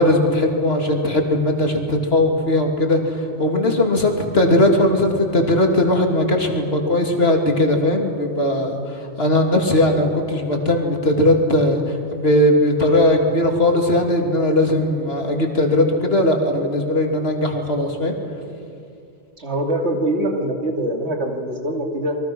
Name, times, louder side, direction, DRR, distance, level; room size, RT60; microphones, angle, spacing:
voice 1, 0.0-3.0 3.4-8.7 9.2-11.8 12.1-18.1, left 1 dB, 55° left, 2 dB, 2.9 m, -18 dB
voice 2, 19.4-22.2, right 1 dB, 65° right, 2 dB, 3.0 m, -23 dB
29.0 x 23.5 x 6.2 m, 2.5 s
omnidirectional pair, 1.2 m